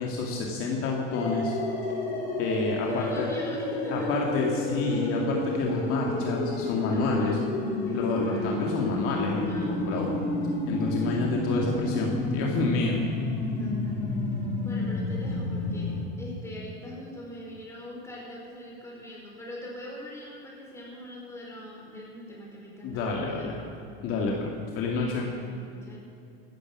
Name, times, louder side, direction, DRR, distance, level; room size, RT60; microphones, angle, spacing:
voice 1, 0.0-1.5 2.4-3.3 3.9-7.4 7.9-10.2 10.7-13.0 22.8-23.6 24.0-25.3, left 3 dB, 50° left, -1 dB, 2.3 m, -29 dB
sound 1, 1.1-16.0, left 2 dB, 85° left, 4.9 m, -30 dB
voice 2, 2.9-4.1 4.9-5.3 6.9-7.4 7.9-8.8 9.5-10.4 10.9-11.2 13.6-14.2 14.6-23.9 25.1-26.0, equal, 10° left, -3 dB, 5.2 m, -43 dB
16.0 x 13.5 x 6.3 m, 2.6 s
supercardioid pair, 135°, 29 cm